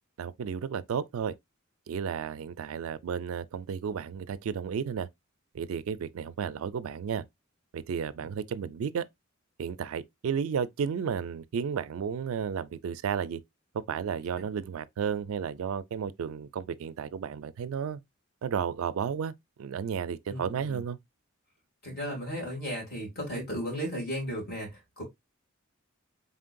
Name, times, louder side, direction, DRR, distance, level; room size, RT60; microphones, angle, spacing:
voice 1, 0.2-1.4 1.9-5.1 5.5-7.2 7.7-9.0 9.6-13.4 13.7-18.0 18.4-19.3 19.6-21.0, right 7 dB, 75° right, 0.3 m, -33 dB
voice 2, 20.3-20.8 21.8-25.0, equal, 45° left, 2.5 m, -35 dB
4.0 x 3.7 x 2.5 m
head